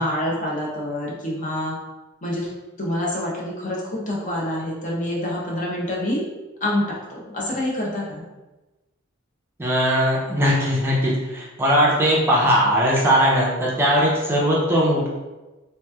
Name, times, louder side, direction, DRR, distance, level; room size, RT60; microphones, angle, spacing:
voice 1, 0.0-1.8 2.2-2.5 2.8-6.2 6.6-8.3, left 1 dB, 40° left, -4 dB, 0.7 m, -26 dB
voice 2, 9.6-15.1, equal, 10° right, -5 dB, 0.5 m, -19 dB
3.1 x 3.0 x 2.2 m, 1.1 s
head